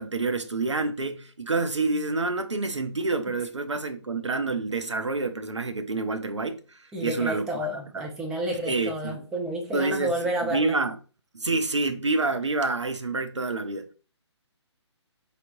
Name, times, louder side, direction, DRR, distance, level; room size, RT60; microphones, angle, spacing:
voice 1, 0.0-7.7 7.9-8.1 8.5-9.2 9.7-11.0 11.3-13.9, right 3 dB, 75° right, 0.6 m, -28 dB
voice 2, 6.9-10.8, equal, 5° right, 0.3 m, -30 dB
4.2 x 3.2 x 2.5 m
figure-of-eight pair, 135°, 15 cm